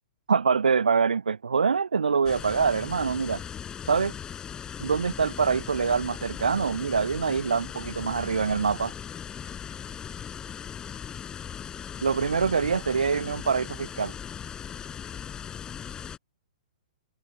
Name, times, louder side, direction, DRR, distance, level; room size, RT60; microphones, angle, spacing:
voice 1, 0.3-3.4 3.9-4.1 4.8-8.9 12.0-14.1, right 5 dB, 70° right, 0.9 m, -25 dB
sound 1, 2.2-16.2, left 8 dB, 15° left, 7.1 m, -39 dB
figure-of-eight pair, 110°, 5 cm